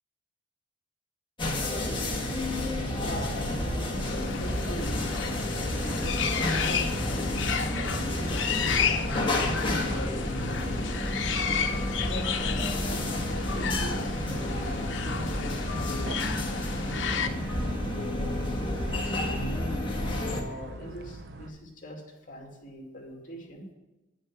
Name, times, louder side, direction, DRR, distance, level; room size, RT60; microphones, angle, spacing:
sound 1, 1.4-20.4, left 1 dB, 25° left, 1.5 m, -30 dB
sound 2, 1.9-21.5, right 2 dB, 60° right, 0.8 m, -42 dB
voice 1, 2.8-5.1 5.8-11.2 12.0-18.1 18.6-22.0 22.3-23.6, equal, 45° left, 0 dB, 2.5 m, -41 dB
sound 3, 4.0-17.3, left 7 dB, 85° left, 0.8 m, -33 dB
9.7 x 6.5 x 5.9 m, 1.0 s
head